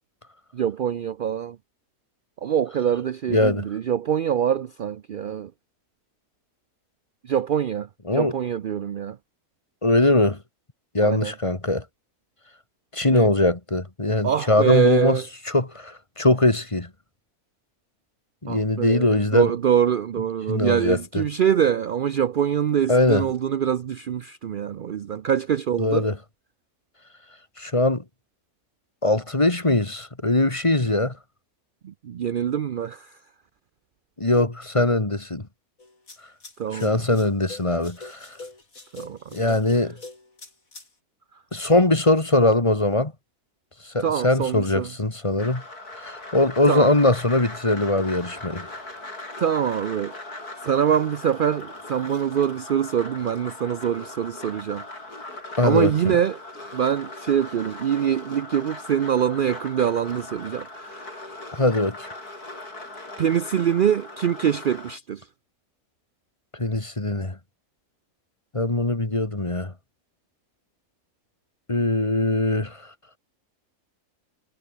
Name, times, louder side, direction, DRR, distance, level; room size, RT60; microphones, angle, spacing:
voice 1, 0.5-1.6 2.4-5.5 7.2-9.2 11.0-11.3 13.1-13.3 14.2-15.3 18.5-26.1 31.8-33.2 36.6-37.2 38.9-39.6 44.0-44.9 46.7-46.9 49.4-50.1 50.6-54.8 55.6-56.4 56.7-61.2 63.2-65.3, right 9 dB, 65° right, 0.5 m, -24 dB
voice 2, 3.3-3.7 8.1-8.3 9.8-10.4 10.9-11.8 12.9-15.2 15.5-16.9 18.4-19.5 20.5-21.2 22.9-23.3 25.8-26.2 27.6-28.0 29.0-31.2 34.2-35.5 36.7-38.4 39.3-39.9 41.5-43.1 43.8-45.6 46.0-48.7 55.6-56.2 61.5-62.1 66.6-67.4 68.5-69.7 71.7-72.8, left 2 dB, 20° left, 2.2 m, -21 dB
sound 1, 35.8-40.9, left 3 dB, 60° left, 4.8 m, -43 dB
sound 2, 45.4-65.0, left 2 dB, 85° left, 7.2 m, -39 dB
omnidirectional pair, 1.6 m